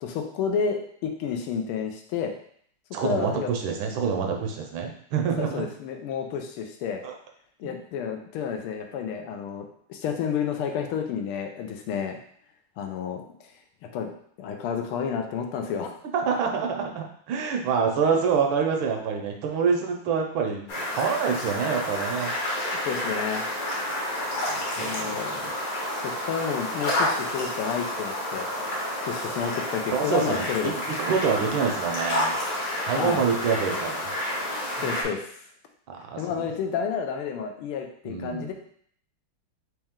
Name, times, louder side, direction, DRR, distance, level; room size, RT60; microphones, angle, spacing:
voice 1, 0.0-2.3 3.0-3.5 5.4-7.0 7.6-12.2 12.8-13.5 13.9-14.1 14.4-15.9 16.3-16.4 22.9-23.5 24.8-25.5 26.0-28.5 29.0-30.8 33.0-33.2 34.8-35.4 36.2-38.5, left 7 dB, 85° left, 4 dB, 1.5 m, -30 dB
voice 2, 2.9-5.7 7.0-7.1 7.6-7.7 16.1-22.3 24.5-25.2 29.9-30.7 31.0-32.4 32.8-34.1 34.8-34.9 35.9-36.5 38.1-38.5, right 6 dB, 75° right, 3 dB, 1.4 m, -26 dB
sound 1, 20.7-35.0, left 1 dB, 50° left, 1.3 m, -30 dB
4.2 x 3.0 x 3.6 m, 0.63 s
omnidirectional pair, 2.3 m